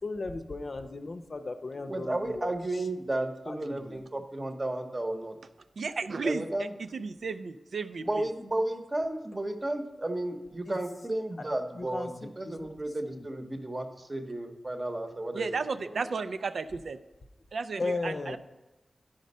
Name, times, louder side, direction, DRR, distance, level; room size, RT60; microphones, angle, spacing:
voice 1, 0.0-2.8 3.5-4.0 10.7-10.8 11.4-11.5 11.7-12.7 13.0-13.3 17.8-18.4, left 3 dB, 50° left, 8 dB, 0.7 m, -36 dB
voice 2, 1.9-5.4 6.2-6.7 8.0-15.5 16.0-16.1, right 1 dB, 25° right, 6 dB, 0.9 m, -33 dB
voice 3, 5.8-8.2 15.3-17.0 17.5-18.4, right 4 dB, 80° right, 11 dB, 0.4 m, -34 dB
10.5 x 5.1 x 5.4 m, 1.1 s
wide cardioid pair, 95°, 0 cm